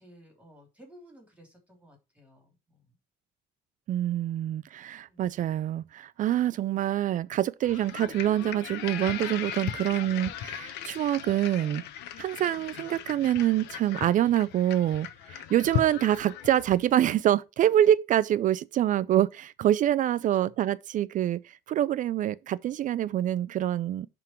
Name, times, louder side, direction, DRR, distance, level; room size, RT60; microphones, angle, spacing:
voice 1, 0.0-3.0 5.0-5.3 20.3-20.5, equal, 10° right, 3.1 m, -55 dB
voice 2, 3.9-11.8 12.2-24.1, right 12 dB, 50° right, 0.4 m, -26 dB
sound 1, 7.6-16.9, left 10 dB, 85° left, 0.9 m, -37 dB
10.5 x 3.8 x 4.5 m
cardioid pair, 110°, 17 cm